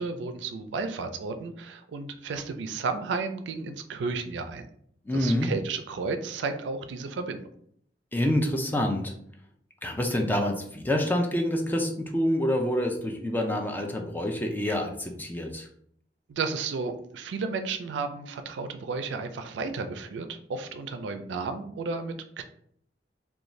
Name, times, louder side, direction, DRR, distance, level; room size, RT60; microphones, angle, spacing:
voice 1, 0.0-4.7 5.1-7.4 16.3-22.4, right 4 dB, 85° right, 8 dB, 0.3 m, -33 dB
voice 2, 5.1-5.5 8.1-9.1 9.8-15.6, left 1 dB, 10° left, 2 dB, 0.3 m, -27 dB
2.5 x 2.2 x 3.0 m, 0.66 s
head